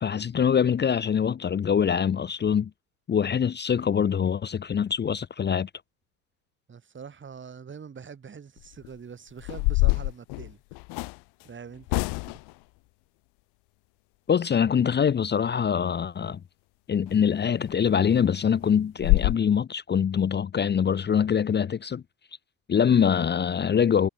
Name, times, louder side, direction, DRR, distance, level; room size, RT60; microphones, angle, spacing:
voice 1, 0.0-2.7 3.1-5.7 14.3-16.4 16.9-22.0 22.7-24.1, left 7 dB, 20° left, 1.3 m, -24 dB
voice 2, 6.7-10.6 11.4-12.1, right 6 dB, 25° right, 7.4 m, -43 dB
sound 1, 8.6-8.9 9.4-11.2 11.9-12.5 17.1-17.2 17.6-17.7 18.1-18.2 18.6-18.7 19.0-19.3, left 29 dB, 55° left, 2.8 m, -25 dB
hypercardioid pair, 90°, 48 cm